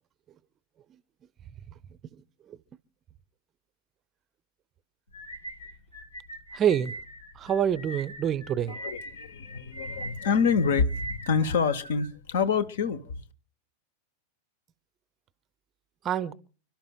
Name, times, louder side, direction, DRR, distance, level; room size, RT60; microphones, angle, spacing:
sound 1, 5.1-12.5, right 1 dB, 80° left, 2.0 m, -42 dB
voice 1, 6.5-6.9 7.4-8.8 16.0-16.3, right 9 dB, 30° right, 0.6 m, -26 dB
voice 2, 8.7-13.2, left 5 dB, 60° left, 0.9 m, -27 dB
30.0 x 11.5 x 2.3 m
figure-of-eight pair, 90°, 0 cm